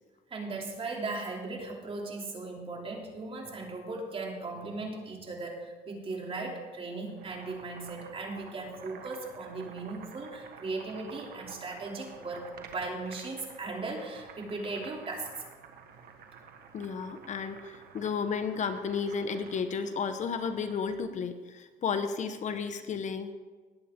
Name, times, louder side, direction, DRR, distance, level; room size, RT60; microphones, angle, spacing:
voice 1, 0.3-15.4, right 3 dB, 35° right, 0 dB, 3.1 m, -37 dB
Boiling, 7.0-21.1, right 6 dB, 65° right, 1.6 m, -51 dB
voice 2, 16.7-23.3, left 6 dB, 45° left, 9 dB, 0.9 m, -33 dB
19.5 x 8.5 x 3.7 m, 1.4 s
cardioid pair, 110°, 17 cm